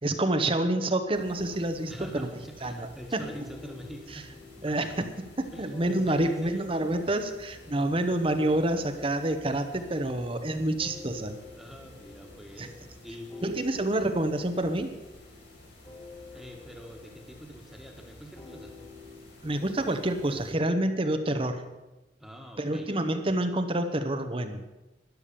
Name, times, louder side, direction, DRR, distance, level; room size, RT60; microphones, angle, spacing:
voice 1, 0.0-2.3 2.6-3.2 4.1-4.2 4.6-4.9 5.4-11.4 12.6-12.7 13.4-14.9 19.4-21.6 22.6-24.6, right 1 dB, 30° right, 8 dB, 0.9 m, -28 dB
sound 1, 0.7-19.5, left 4 dB, 20° left, 1.8 m, -50 dB
sound 2, 1.1-20.5, left 1 dB, 70° left, 4.8 m, -52 dB
voice 2, 1.9-4.3 4.6-5.0 5.5-6.6 11.6-13.7 16.3-18.8 22.2-22.9, equal, ahead, 2 dB, 1.7 m, -45 dB
12.5 x 10.5 x 6.9 m, 1.1 s
head